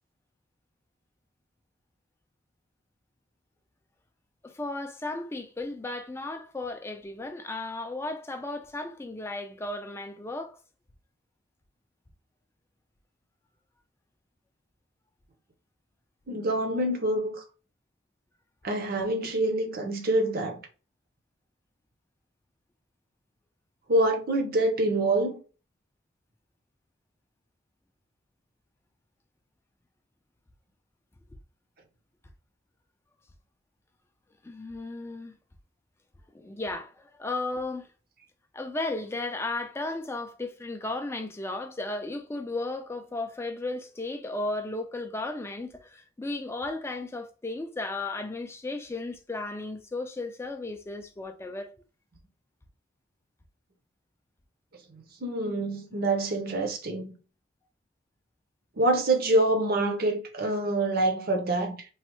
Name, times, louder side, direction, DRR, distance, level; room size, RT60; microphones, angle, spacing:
voice 1, 4.4-10.6 34.4-35.4 36.3-37.9 38.5-51.8, left 2 dB, 15° left, 0.3 m, -35 dB
voice 2, 16.3-17.4 18.6-20.6 23.9-25.4 54.9-57.1 58.8-61.9, right 1 dB, 50° right, 0.7 m, -26 dB
3.1 x 2.0 x 3.0 m
head